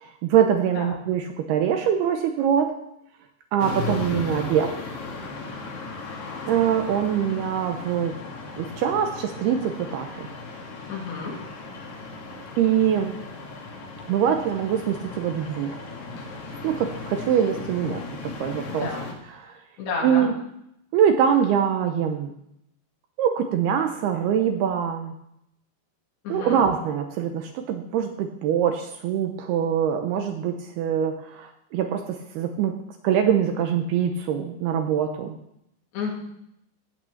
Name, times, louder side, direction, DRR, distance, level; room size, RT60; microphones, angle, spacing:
voice 1, 0.0-2.8 3.5-4.7 6.5-8.2 8.6-10.3 12.6-13.2 14.1-15.8 16.6-18.9 19.3-19.6 20.0-20.3 20.9-22.3 23.2-25.1 26.3-32.8 33.0-35.3, right 8 dB, 75° right, 5 dB, 2.5 m, -24 dB
sound 1, 3.6-19.1, left 3 dB, 50° left, 2.8 m, -36 dB
voice 2, 3.7-4.1 10.9-11.4 18.7-19.0 19.8-20.3 26.2-26.6 35.9-36.1, left 4 dB, 70° left, -1 dB, 4.9 m, -31 dB
17.0 x 6.0 x 7.2 m, 0.78 s
omnidirectional pair, 5.2 m